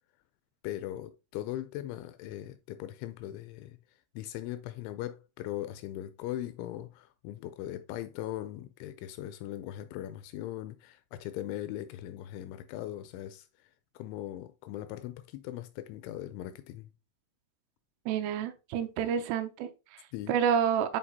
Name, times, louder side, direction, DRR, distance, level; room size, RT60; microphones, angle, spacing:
voice 1, 0.6-3.8 4.2-13.5 14.0-16.9 20.1-20.4, left 13 dB, 85° left, 2.7 m, -39 dB
voice 2, 18.1-21.0, right 8 dB, 85° right, 3.2 m, -29 dB
9.9 x 3.9 x 2.7 m
omnidirectional pair, 5.7 m